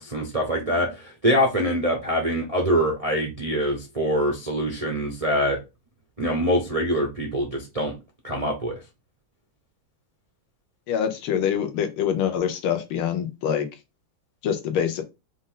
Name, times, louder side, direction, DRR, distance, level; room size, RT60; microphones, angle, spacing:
voice 1, 0.0-5.6 6.2-7.9 8.2-8.8, equal, 55° right, 0.4 m, -24 dB
voice 2, 10.9-13.7 14.4-15.0, left 8 dB, 75° left, 1.7 m, -25 dB
5.2 x 2.6 x 3.7 m
omnidirectional pair, 2.4 m